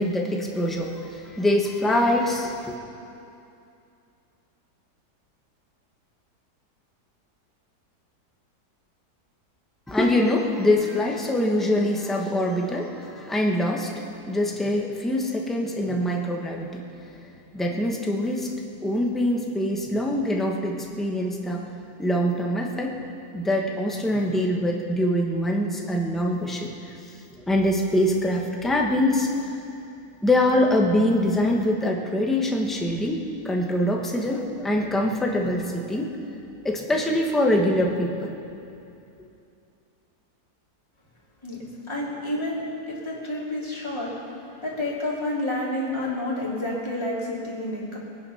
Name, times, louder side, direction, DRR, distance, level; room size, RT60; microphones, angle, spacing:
voice 1, 0.0-2.7 9.9-13.9 14.3-16.8 17.5-18.5 18.8-21.6 22.0-22.9 23.3-26.7 27.5-29.3 30.2-36.1 36.6-38.3, left 1 dB, ahead, 0 dB, 1.1 m, -24 dB
voice 2, 41.9-44.1 44.5-48.0, left 1 dB, 15° left, -6 dB, 3.1 m, -29 dB
22.0 x 9.6 x 5.8 m, 2.6 s
omnidirectional pair, 1.8 m